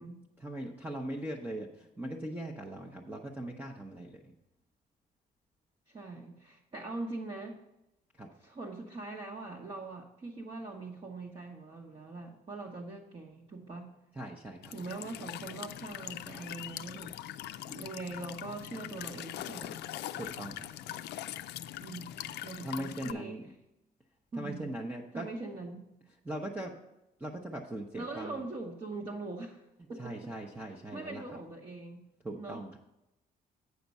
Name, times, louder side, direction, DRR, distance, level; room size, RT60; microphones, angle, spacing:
voice 1, 0.4-4.3 8.1-8.3 14.2-14.7 20.1-20.7 22.6-23.5 24.4-25.3 26.2-26.7 27.2-28.4 30.0-31.2 32.2-32.8, right 1 dB, 10° right, 0 dB, 0.7 m, -40 dB
voice 2, 5.9-7.6 8.4-13.9 14.7-17.1 17.7-19.8 21.8-23.4 24.3-24.7 25.1-25.9 27.9-29.6 29.9-30.3 30.9-32.1 32.3-32.6, right 3 dB, 30° right, -2 dB, 0.9 m, -42 dB
Walk footsteps / Chirp tweet / Stream, 14.6-23.1, left 12 dB, 85° left, 0.4 m, -42 dB
8.1 x 5.8 x 5.3 m, 0.92 s
cardioid pair, 145°, 17 cm